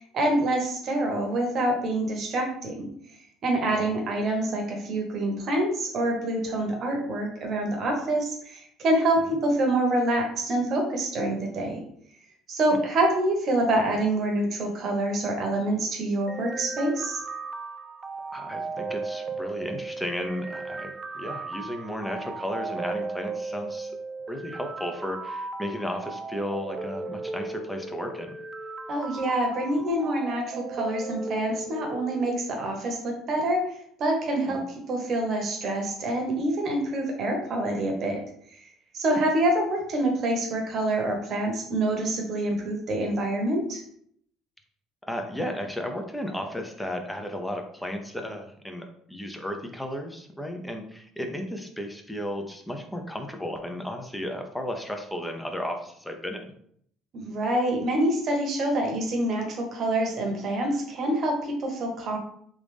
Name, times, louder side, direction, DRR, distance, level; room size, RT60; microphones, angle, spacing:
voice 1, 0.0-2.9 3.4-11.8 12.5-17.2 28.9-33.7 34.0-38.2 38.9-43.8 57.1-62.2, right 1 dB, 50° right, 2 dB, 1.0 m, -26 dB
sound 1, 16.3-32.3, right 3 dB, 30° right, 0.3 m, -36 dB
voice 2, 18.3-23.9 24.3-28.3 34.5-34.6 39.1-39.2 45.1-56.4, left 1 dB, 5° left, 4 dB, 0.6 m, -34 dB
3.3 x 2.5 x 3.4 m, 0.66 s
supercardioid pair, 90°, 0 cm